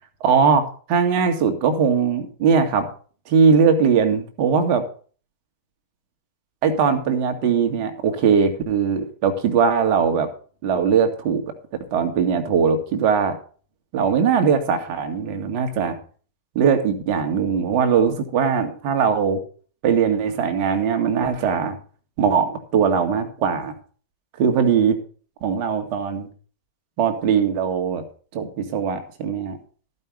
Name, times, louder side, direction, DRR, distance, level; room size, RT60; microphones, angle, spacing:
voice 1, 0.2-2.9 3.3-4.8 6.6-10.3 10.6-11.4 11.9-13.4 13.9-16.0 16.5-19.4 19.8-21.8 22.2-23.7 24.4-25.0 25.4-26.3 27.0-28.0 28.3-29.6, right 6 dB, 45° right, 6 dB, 1.9 m, -20 dB
14.0 x 5.5 x 6.2 m, 0.41 s
figure-of-eight pair, 90°, 0 cm